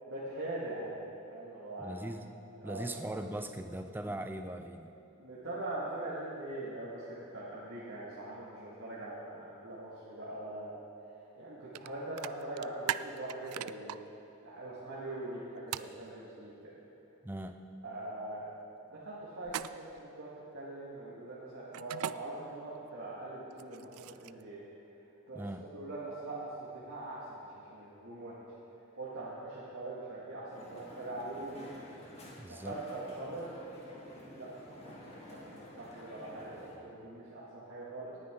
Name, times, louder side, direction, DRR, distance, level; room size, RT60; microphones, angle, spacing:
voice 1, 0.1-0.9 1.3-2.0 2.6-2.9 5.2-7.1 7.3-10.7 11.4-14.0 14.4-16.7 17.8-18.5 18.9-24.6 25.3-25.4 25.7-28.4 29.0-31.7 32.4-33.5 34.2-38.2, right 2 dB, 65° right, -8 dB, 2.0 m, -42 dB
voice 2, 1.8-2.3 2.6-4.9 17.2-17.7 25.3-25.7 32.4-32.8, right 1 dB, 10° right, 6 dB, 0.5 m, -40 dB
sound 1, 11.7-11.9 12.2-14.0 15.7-15.9 19.4-20.0 21.7-22.1 23.5-24.4, right 11 dB, 80° right, 0.3 m, -38 dB
Crowd, 30.5-36.8, left 1 dB, 30° left, 1.9 m, -51 dB
18.5 x 9.9 x 3.8 m, 2.8 s
head